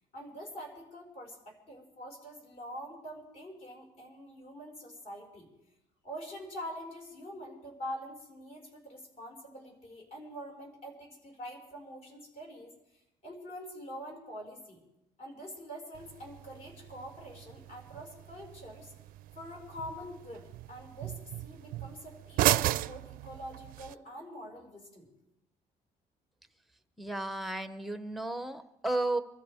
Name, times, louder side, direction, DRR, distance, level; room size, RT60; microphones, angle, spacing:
voice 1, 0.1-5.5 6.0-12.7 13.2-14.8 15.2-18.9 19.3-25.1, equal, 50° left, 0 dB, 5.2 m, -45 dB
sound 1, 15.9-23.9, right 15 dB, 80° right, 0.4 m, -35 dB
voice 2, 27.0-29.2, right 2 dB, ahead, 9 dB, 0.7 m, -33 dB
25.0 x 13.5 x 3.5 m, 0.87 s
cardioid pair, 155°, 15 cm